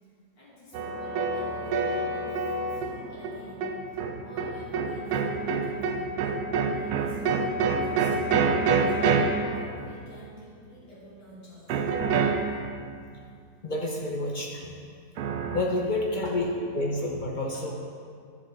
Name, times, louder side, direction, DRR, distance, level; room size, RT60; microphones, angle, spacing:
voice 1, 0.4-4.0 4.2-6.2 6.5-9.0 9.4-11.8, left 1 dB, 75° left, -8 dB, 3.1 m, -49 dB
sound 1, 0.7-10.3 11.7-12.9 15.2-15.6, right 4 dB, 70° right, 1.1 m, -27 dB
voice 2, 13.6-14.8 15.5-17.7, left 1 dB, 50° left, -2 dB, 0.6 m, -29 dB
10.0 x 7.1 x 3.5 m, 2.2 s
omnidirectional pair, 1.9 m